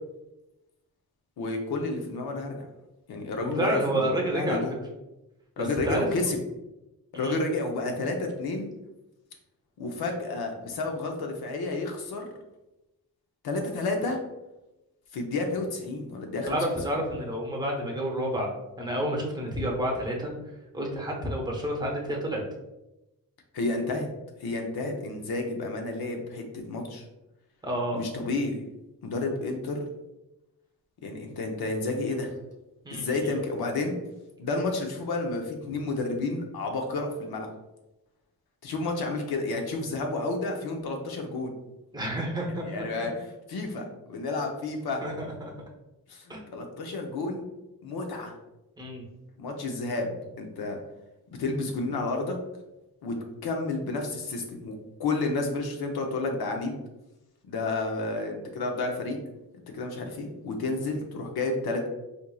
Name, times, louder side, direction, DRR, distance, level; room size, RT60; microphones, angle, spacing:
voice 1, 1.4-2.7 3.1-4.7 5.6-6.4 7.1-8.7 9.8-12.3 13.4-14.2 15.1-16.6 23.5-24.1 24.4-27.0 27.9-28.6 29.0-29.8 31.0-32.3 32.9-34.0 34.4-37.5 38.6-41.5 42.6-45.0 46.1-47.4 47.8-48.3 49.4-50.1 50.4-50.8 51.4-52.4 53.0-53.2 53.4-56.8 57.5-59.2 59.7-61.9, left 2 dB, 90° left, 3 dB, 0.7 m, -31 dB
voice 2, 3.4-4.7 5.8-6.1 7.1-7.4 16.5-18.5 18.8-20.3 20.7-22.4 27.6-28.0 32.8-33.3 41.9-42.7 45.0-45.5 46.3-46.4 48.8-49.1, right 1 dB, 10° right, -1 dB, 0.7 m, -29 dB
4.4 x 2.6 x 2.3 m, 0.97 s
wide cardioid pair, 140°, 36 cm